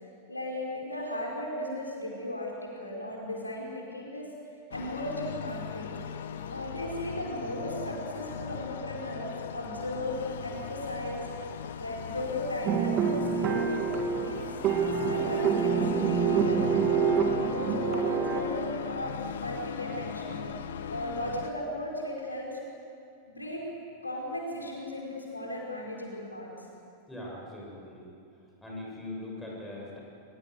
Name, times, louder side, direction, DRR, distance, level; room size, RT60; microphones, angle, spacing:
voice 1, 0.3-4.3 4.7-5.9 6.5-10.1 10.4-11.2 11.8-13.9 14.2-14.4 14.8-15.7 16.0-20.5 20.9-22.6 23.3-23.6 24.0-26.5, left 1 dB, 85° left, -2 dB, 4.8 m, -36 dB
sound 1, 4.7-21.5, left 8 dB, 60° left, 1.1 m, -38 dB
sound 2, 12.6-18.4, right 6 dB, 35° right, 2.7 m, -27 dB
voice 2, 27.1-28.1 28.6-30.0, left 1 dB, 5° left, -4 dB, 7.4 m, -41 dB
22.0 x 22.0 x 8.0 m, 2.5 s
figure-of-eight pair, 90°, 0 cm